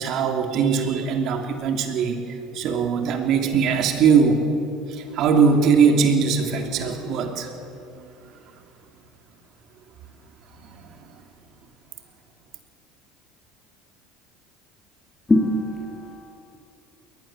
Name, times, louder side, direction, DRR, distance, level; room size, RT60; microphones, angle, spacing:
voice 1, 0.0-4.5 4.9-7.7 8.0-8.1 10.6-11.1, right 6 dB, 55° right, 5 dB, 2.8 m, -21 dB
voice 2, 15.3-16.3, left 1 dB, 20° left, -2 dB, 3.6 m, -22 dB
21.5 x 19.5 x 7.4 m, 2.7 s
hypercardioid pair, 80°, 0 cm